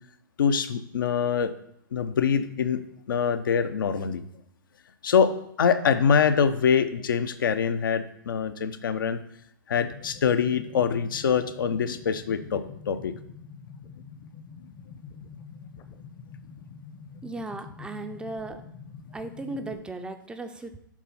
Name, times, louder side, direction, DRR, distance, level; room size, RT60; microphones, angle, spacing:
voice 1, 0.4-1.5 1.9-2.8 3.1-4.2 5.0-5.3 5.6-9.2 9.7-13.1, left 7 dB, 75° left, 9 dB, 0.6 m, -24 dB
sound 1, 9.7-19.7, left 6 dB, 30° left, 0.7 m, -46 dB
voice 2, 17.2-18.6 19.1-20.8, right 2 dB, 10° right, 8 dB, 0.4 m, -36 dB
7.4 x 4.1 x 5.4 m, 0.76 s
hypercardioid pair, 125°, 11 cm